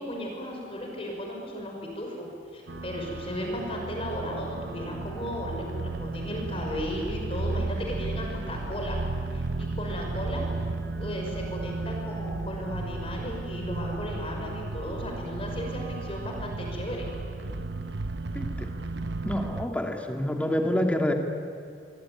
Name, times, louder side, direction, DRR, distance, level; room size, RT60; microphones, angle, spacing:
voice 1, 0.0-9.0 9.3-10.5 11.0-17.1, equal, 30° left, 1 dB, 5.9 m, -35 dB
sound 1, 2.7-19.7, right 3 dB, 75° right, 1.0 m, -34 dB
voice 2, 18.3-18.7 19.2-21.1, left 1 dB, 5° left, 3 dB, 2.3 m, -27 dB
26.5 x 23.5 x 9.7 m, 2.6 s
head